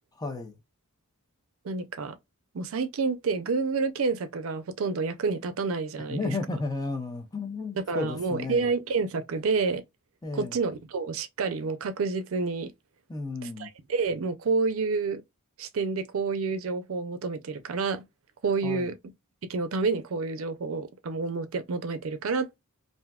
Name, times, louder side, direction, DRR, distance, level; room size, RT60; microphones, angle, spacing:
voice 1, 0.2-0.6 6.1-8.7 10.2-10.6 13.1-13.7 18.6-18.9, left 3 dB, 20° left, 0.5 m, -33 dB
voice 2, 1.6-2.2 2.5-6.3 7.8-9.8 10.3-12.7 13.6-15.2 15.6-18.0 18.4-19.0 19.5-22.6, right 4 dB, 70° right, 0.5 m, -29 dB
3.4 x 2.6 x 2.2 m
head